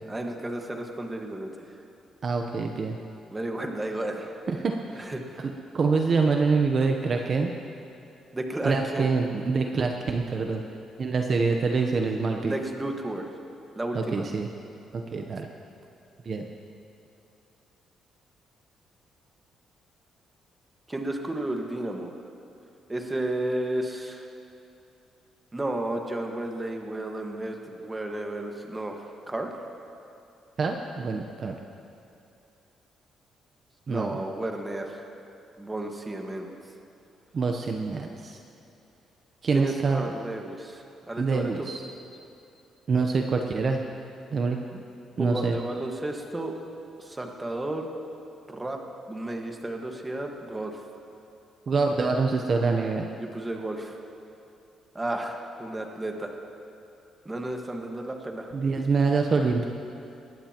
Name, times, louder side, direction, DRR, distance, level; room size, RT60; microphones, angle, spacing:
voice 1, 0.0-1.8 3.3-4.3 4.9-5.5 8.3-9.0 12.4-13.3 13.7-14.2 20.9-22.1 22.9-24.3 25.5-29.5 33.9-35.1 35.6-36.5 39.5-41.5 45.2-46.6 47.0-47.9 48.5-48.8 49.1-50.8 53.2-54.0 54.9-56.4 57.2-58.5, right 1 dB, 15° right, 2 dB, 1.6 m, -33 dB
voice 2, 2.2-3.0 4.5-5.1 5.7-7.5 8.6-10.6 11.0-12.5 13.9-14.5 14.9-15.5 16.2-16.5 30.6-31.5 33.9-34.2 37.3-38.4 39.4-40.0 41.2-41.8 42.9-43.8 44.3-44.8 45.2-45.6 51.7-53.1 58.5-59.7, right 4 dB, 45° right, 3 dB, 0.9 m, -25 dB
21.0 x 15.0 x 3.0 m, 2.7 s
cardioid pair, 90°, 0 cm